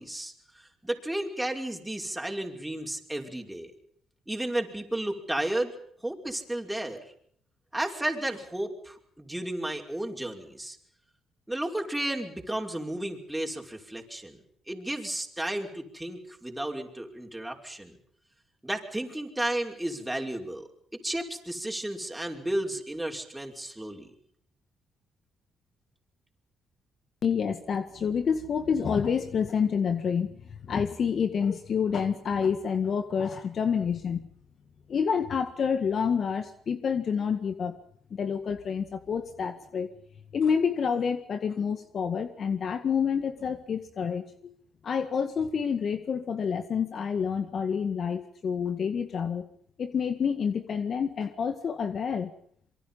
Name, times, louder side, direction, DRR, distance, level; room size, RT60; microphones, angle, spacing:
voice 1, 0.0-3.7 4.3-5.8 6.0-7.0 7.7-10.8 11.5-14.4 14.7-18.0 18.6-20.7 21.0-24.1, right 1 dB, 5° right, 2 dB, 5.4 m, -33 dB
voice 2, 27.2-34.3 34.9-37.8 38.1-39.9 40.3-44.5 44.8-49.5 49.8-52.3, left 6 dB, 55° left, 10 dB, 1.9 m, -28 dB
27.0 x 24.0 x 5.6 m, 0.64 s
cardioid pair, 90°, 0 cm